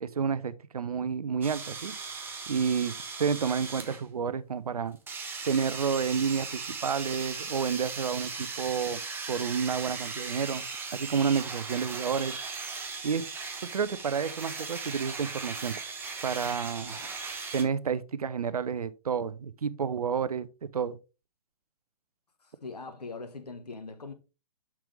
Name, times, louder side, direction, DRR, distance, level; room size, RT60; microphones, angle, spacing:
voice 1, 0.0-1.9 2.5-5.0 5.4-9.0 9.3-10.7 10.9-12.4 13.0-13.2 13.6-15.7 16.2-17.0 17.5-20.5 20.7-21.0, right 6 dB, 70° right, 0.7 m, -30 dB
sound 1, 1.4-4.0 5.1-17.6, right 4 dB, 10° right, 1.0 m, -38 dB
voice 2, 22.4-24.1, left 3 dB, 80° left, 1.2 m, -42 dB
6.1 x 6.0 x 3.3 m
figure-of-eight pair, 120°, 20 cm